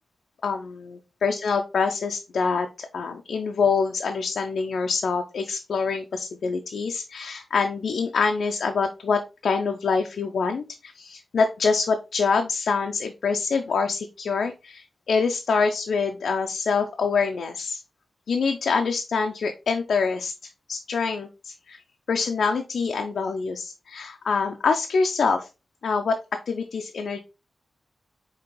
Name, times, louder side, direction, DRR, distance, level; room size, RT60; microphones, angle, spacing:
voice 1, 0.4-17.8 18.3-20.3 20.7-21.8 22.1-25.5 25.8-27.2, left 5 dB, 80° left, 5 dB, 0.4 m, -25 dB
5.0 x 2.8 x 3.0 m, 0.28 s
cardioid pair, 45°, 0 cm